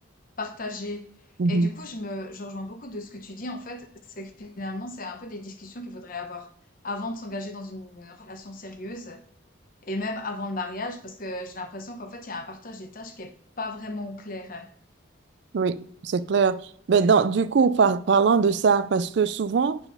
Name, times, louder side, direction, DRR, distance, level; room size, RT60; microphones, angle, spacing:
voice 1, 0.4-1.1 1.5-6.5 6.8-9.2 9.8-14.7, left 2 dB, 45° left, 0.9 m, -35 dB
voice 2, 15.5-16.6 16.9-19.8, right 5 dB, 60° right, 0.4 m, -21 dB
9.0 x 4.5 x 5.5 m
head